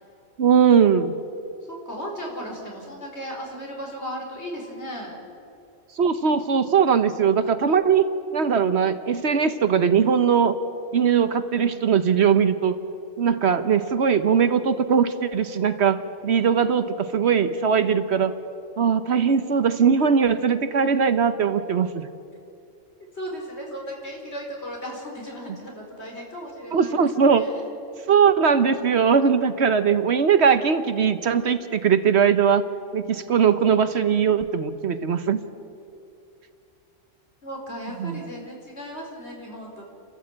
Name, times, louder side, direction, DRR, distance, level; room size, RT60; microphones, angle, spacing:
voice 1, 0.4-1.1 6.0-8.1 8.3-10.6 10.9-12.8 13.2-18.3 18.8-22.1 26.7-27.4 28.1-32.6 32.9-35.4 38.0-38.2, right 7 dB, 60° right, 10 dB, 1.1 m, -20 dB
voice 2, 1.7-5.1 23.1-27.0 27.3-27.6 37.4-39.9, equal, 60° left, 0 dB, 4.9 m, -36 dB
29.0 x 13.5 x 8.6 m, 2.6 s
omnidirectional pair, 1.3 m